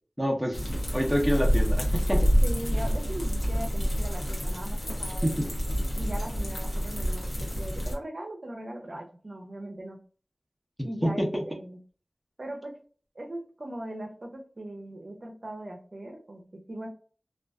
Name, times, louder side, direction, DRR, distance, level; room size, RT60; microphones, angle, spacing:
voice 1, 0.2-0.7 0.9-2.3 5.2-5.5 11.0-11.4, equal, ahead, 1 dB, 0.7 m, -27 dB
sound 1, 0.5-7.9, equal, 70° left, 0.9 m, -27 dB
voice 2, 2.4-5.5 6.0-10.0 10.8-11.8 12.4-12.8 13.1-16.9, right 1 dB, 55° right, 2 dB, 0.5 m, -39 dB
2.4 x 2.3 x 2.3 m, 0.41 s
wide cardioid pair, 55°, 0 cm